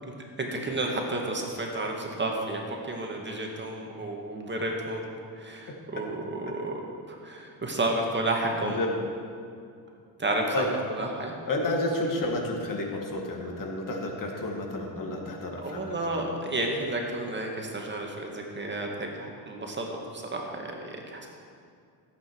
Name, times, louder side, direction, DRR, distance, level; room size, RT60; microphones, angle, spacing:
voice 1, 0.4-6.7 7.1-8.8 10.2-11.3 15.6-21.3, right 2 dB, 25° right, 0 dB, 2.0 m, -31 dB
voice 2, 8.6-8.9 10.5-10.7 11.5-16.3, left 2 dB, 50° left, 1 dB, 2.1 m, -31 dB
15.5 x 8.6 x 4.8 m, 2.3 s
cardioid pair, 85°, 43 cm